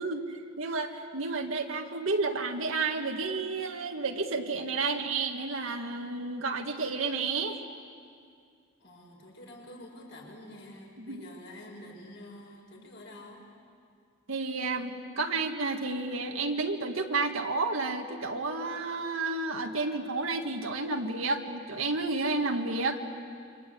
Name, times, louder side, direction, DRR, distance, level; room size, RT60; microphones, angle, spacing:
voice 1, 0.0-7.6 11.0-11.2 14.3-23.0, right 3 dB, 80° right, 3 dB, 1.8 m, -31 dB
voice 2, 8.8-13.5, left 1 dB, 60° left, 0 dB, 6.1 m, -48 dB
28.0 x 25.5 x 8.4 m, 2.2 s
head